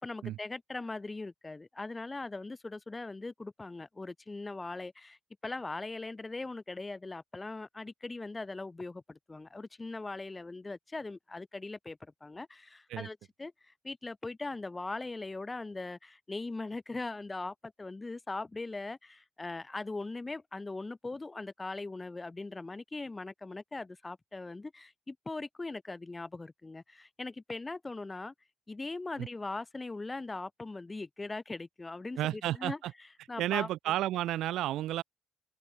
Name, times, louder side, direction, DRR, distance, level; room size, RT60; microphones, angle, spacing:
voice 1, 0.0-28.3 28.7-32.8 33.3-33.7, left 3 dB, 20° left, 4.0 m, -40 dB
voice 2, 32.2-32.9 33.4-35.0, right 14 dB, 85° right, 1.6 m, -32 dB
cardioid pair, 90°, 0 cm